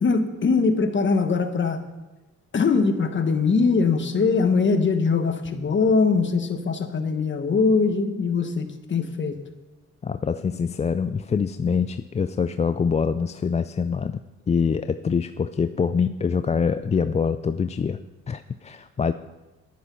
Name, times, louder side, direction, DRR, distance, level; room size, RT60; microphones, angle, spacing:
voice 1, 0.0-1.8 2.5-9.3, left 4 dB, 40° left, 7 dB, 1.5 m, -22 dB
voice 2, 10.0-14.2 14.5-18.0 18.3-19.1, left 6 dB, 25° left, 11 dB, 0.4 m, -24 dB
11.0 x 10.0 x 5.6 m, 1.1 s
cardioid pair, 90°, 30 cm